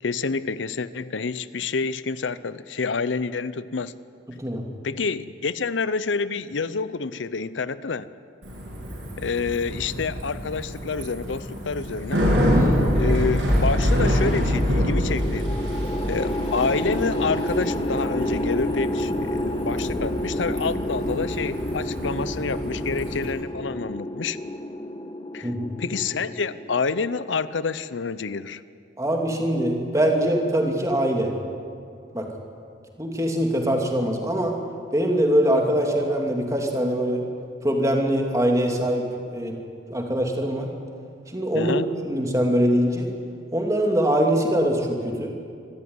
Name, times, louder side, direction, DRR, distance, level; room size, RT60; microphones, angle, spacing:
voice 1, 0.0-4.0 4.8-8.1 9.2-12.3 12.9-15.5 16.0-24.4 25.3-25.5 25.8-28.6 41.5-41.9, left 4 dB, 85° left, 15 dB, 0.7 m, -28 dB
voice 2, 4.3-4.6 12.5-12.8 25.4-25.7 29.0-31.3 32.1-32.3 33.0-34.6 34.9-37.2 37.6-39.6 39.9-40.7 41.3-41.7 42.0-43.1 43.5-45.3, equal, 15° right, 2 dB, 2.5 m, -23 dB
Bicycle, 8.4-23.3, equal, 85° right, 8.0 m, -26 dB
sound 1, 15.2-27.5, left 1 dB, 25° left, 1.2 m, -30 dB
25.0 x 13.5 x 9.6 m, 2.4 s
head